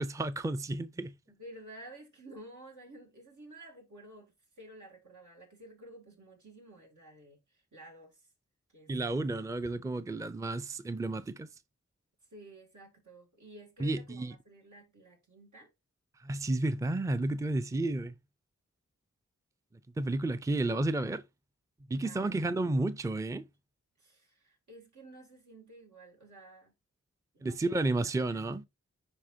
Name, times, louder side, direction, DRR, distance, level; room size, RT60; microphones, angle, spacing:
voice 1, 0.0-1.1 8.9-11.5 13.8-14.3 16.2-18.1 20.0-21.2 21.9-23.4 27.4-28.6, right 2 dB, 10° right, 0.4 m, -31 dB
voice 2, 1.3-8.3 8.7-8.9 12.3-15.7 22.0-22.4 24.0-26.7 27.3-27.9 28.1-28.5, right 1 dB, 80° right, 2.6 m, -52 dB
9.9 x 3.6 x 2.8 m
wide cardioid pair, 65°, 29 cm